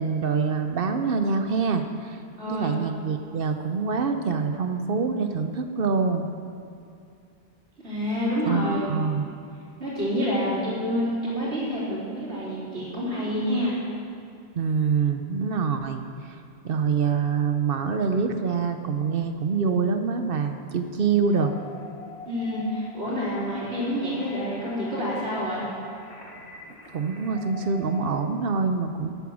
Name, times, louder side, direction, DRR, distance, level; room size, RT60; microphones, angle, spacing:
voice 1, 0.0-2.2 2.5-6.3 8.4-9.3 14.5-16.4 16.6-21.5 26.9-29.1, right 5 dB, 60° right, 7 dB, 0.9 m, -25 dB
voice 2, 2.4-2.8 7.8-9.0 9.8-13.9 22.3-25.7, equal, 85° right, -7 dB, 3.9 m, -28 dB
sound 1, 21.3-28.1, left 2 dB, 80° left, 1.8 m, -43 dB
12.0 x 9.1 x 6.2 m, 2.4 s
omnidirectional pair, 1.1 m